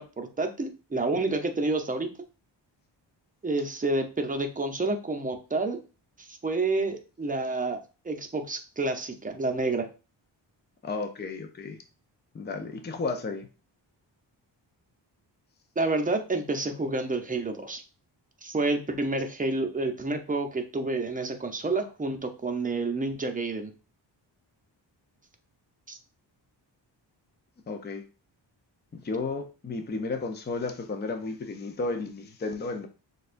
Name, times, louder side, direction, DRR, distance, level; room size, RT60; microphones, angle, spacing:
voice 1, 0.0-2.1 3.4-5.8 6.2-7.8 8.0-9.9 15.8-17.8 18.4-23.7 25.9-26.0, right 2 dB, 20° right, 5 dB, 0.7 m, -29 dB
voice 2, 10.8-11.8 12.3-13.5 27.7-28.0 28.9-32.9, left 3 dB, 25° left, 5 dB, 0.5 m, -33 dB
6.4 x 2.4 x 2.5 m, 0.33 s
cardioid pair, 95°, 45 cm